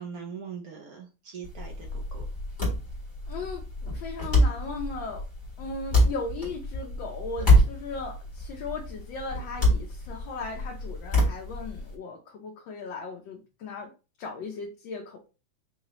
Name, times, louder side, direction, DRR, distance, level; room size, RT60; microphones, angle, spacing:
voice 1, 0.0-2.2, right 6 dB, 65° right, 2 dB, 1.0 m, -41 dB
sound 1, 1.4-11.9, left 1 dB, 25° left, 1.7 m, -26 dB
voice 2, 3.3-5.2 5.6-13.9 14.2-15.2, left 3 dB, 80° left, 0 dB, 1.5 m, -37 dB
4.8 x 2.8 x 3.0 m, 0.31 s
omnidirectional pair, 2.1 m